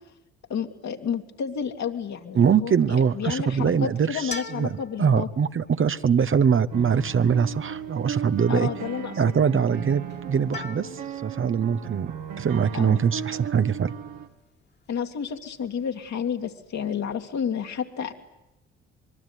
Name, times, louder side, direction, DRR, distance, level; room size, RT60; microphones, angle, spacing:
voice 1, 0.5-5.3 8.5-9.8 12.7-13.0 14.9-18.1, left 7 dB, 60° left, 4 dB, 2.5 m, -31 dB
voice 2, 2.3-8.7 9.2-12.1 12.4-13.9, right 7 dB, 40° right, 12 dB, 1.1 m, -23 dB
sound 1, 4.1-17.0, left 4 dB, 30° left, 2.1 m, -45 dB
sound 2, 6.7-14.3, right 9 dB, 70° right, 2.0 m, -36 dB
25.0 x 22.5 x 9.8 m, 0.92 s
hypercardioid pair, 45°, 32 cm